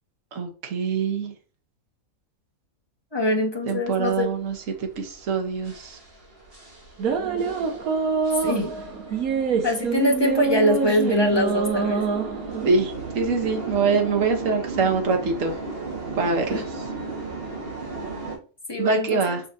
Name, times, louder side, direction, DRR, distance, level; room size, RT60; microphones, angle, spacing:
voice 1, 0.3-1.3 3.7-6.0 12.6-12.9 13.1-15.6 16.2-16.6 18.8-19.4, right 4 dB, 65° right, 4 dB, 1.6 m, -24 dB
voice 2, 3.1-4.3 8.4-8.7 9.6-12.0 16.5-16.6 18.7-19.2, left 1 dB, 20° left, 0 dB, 1.4 m, -23 dB
sound 1, 3.9-18.4, right 3 dB, 40° right, 2.0 m, -36 dB
sound 2, 7.0-12.9, right 5 dB, 90° right, 1.4 m, -26 dB
6.2 x 5.6 x 2.8 m, 0.37 s
omnidirectional pair, 1.5 m